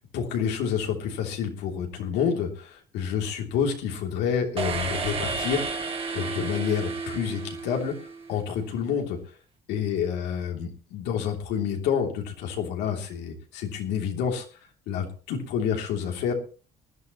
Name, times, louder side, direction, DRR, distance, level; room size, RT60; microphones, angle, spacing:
voice 1, 0.1-5.6 6.1-7.9 8.3-9.2 9.7-14.4 14.9-16.3, left 7 dB, 90° left, 2 dB, 3.1 m, -28 dB
sound 1, 4.6-8.4, right 4 dB, 35° right, 2.8 m, -32 dB
19.5 x 12.5 x 3.1 m, 0.36 s
cardioid pair, 110°, 17 cm